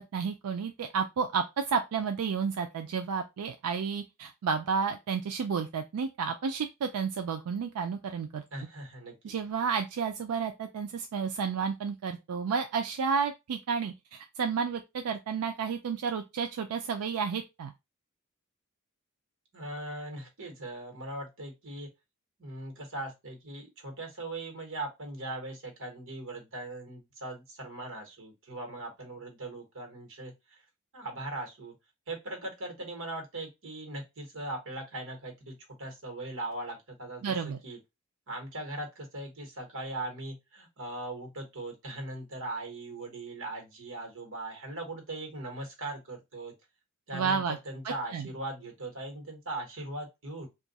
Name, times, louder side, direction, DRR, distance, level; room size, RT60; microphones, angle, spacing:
voice 1, 0.1-8.4 9.2-17.7 37.2-37.6 47.1-47.6 47.8-48.3, right 6 dB, 90° right, 6 dB, 0.4 m, -31 dB
voice 2, 8.5-9.1 19.5-21.9 22.4-30.6 30.9-31.7 32.1-37.8 38.3-46.5 47.1-50.5, right 2 dB, 65° right, 3 dB, 1.2 m, -39 dB
2.6 x 2.4 x 3.9 m, 0.23 s
head